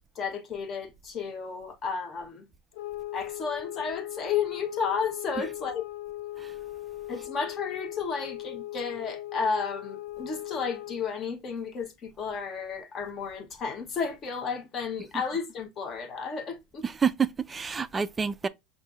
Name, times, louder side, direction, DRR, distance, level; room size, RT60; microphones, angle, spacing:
voice 1, 0.1-2.4 3.1-5.8 7.1-16.8, left 5 dB, 35° left, 1.1 m, -32 dB
sound 1, 2.7-11.1, left 15 dB, 80° left, 0.7 m, -39 dB
voice 2, 16.8-18.5, right 6 dB, 15° right, 0.3 m, -29 dB
5.5 x 2.6 x 2.5 m
supercardioid pair, 135°, 0 cm